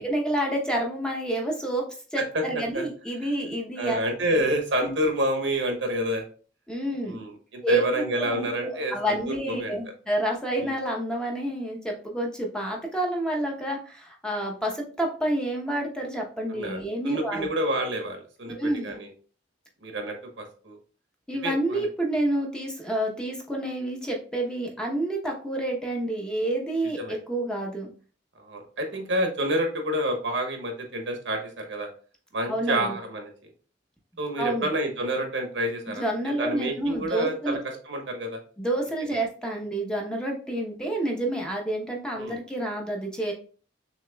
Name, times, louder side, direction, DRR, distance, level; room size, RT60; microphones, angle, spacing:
voice 1, 0.0-1.8 2.1-4.0 4.3-4.4 4.8-4.9 6.7-7.2 7.6-17.5 18.5-19.0 21.3-27.9 32.5-33.0 34.4-34.7 35.9-37.6 38.6-43.3, right 1 dB, 5° left, 0 dB, 0.8 m, -29 dB
voice 2, 3.8-6.2 7.0-9.2 9.5-9.7 10.6-10.7 16.5-19.1 19.8-20.8 21.4-21.9 27.0-27.2 28.4-31.9 32.3-33.3 34.2-36.0 36.4-37.6 37.9-38.4 42.2-42.4, right 1 dB, 80° right, 3 dB, 1.1 m, -28 dB
6.5 x 2.9 x 2.2 m, 0.40 s
head